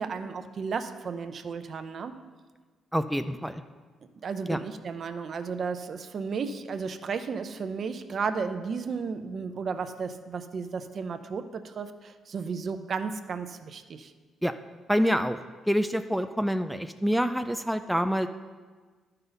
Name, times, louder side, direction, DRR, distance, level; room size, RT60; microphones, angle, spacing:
voice 1, 0.0-2.1 4.2-14.1, right 5 dB, 50° right, 9 dB, 0.6 m, -33 dB
voice 2, 2.9-3.6 4.5-4.6 14.4-14.5 14.9-15.4 15.7-18.3, equal, ahead, 8 dB, 0.3 m, -26 dB
12.0 x 5.5 x 4.0 m, 1.4 s
cardioid pair, 90°, 0 cm